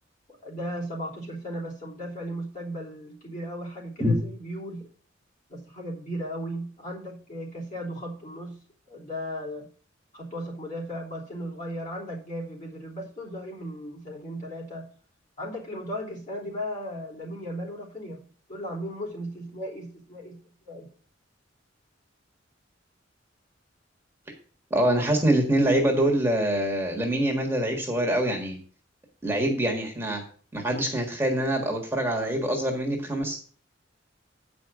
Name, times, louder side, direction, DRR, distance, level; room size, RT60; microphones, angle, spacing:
voice 1, 0.4-4.9 5.5-9.7 10.1-14.9 15.4-20.9, equal, 40° left, -4 dB, 3.3 m, -36 dB
voice 2, 24.7-28.6 29.2-30.2 30.5-33.4, right 1 dB, 10° right, 0 dB, 1.6 m, -24 dB
9.0 x 5.3 x 6.1 m, 0.43 s
head